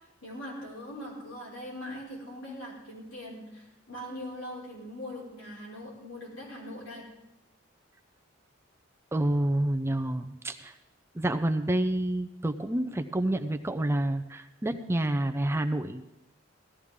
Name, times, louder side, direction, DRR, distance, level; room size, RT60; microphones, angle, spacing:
voice 1, 0.2-7.1, left 1 dB, 80° left, -4 dB, 5.3 m, -41 dB
voice 2, 9.1-10.7 11.2-16.0, right 1 dB, 15° right, 8 dB, 0.5 m, -28 dB
17.5 x 13.5 x 3.7 m, 0.95 s
head